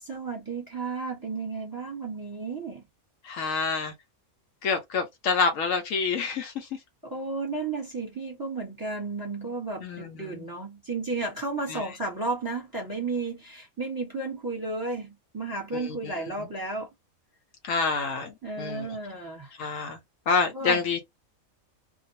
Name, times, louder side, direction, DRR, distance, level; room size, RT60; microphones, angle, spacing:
voice 1, 0.1-2.8 7.0-16.9 18.4-19.6 20.5-20.8, right 3 dB, 15° right, 1.0 m, -33 dB
voice 2, 3.2-3.9 4.6-6.8 9.8-10.5 11.7-11.9 15.7-16.1 16.4-16.5 17.6-19.0 19.6-20.0 20.3-21.0, left 5 dB, 70° left, 1.0 m, -28 dB
2.5 x 2.3 x 2.6 m
omnidirectional pair, 1.5 m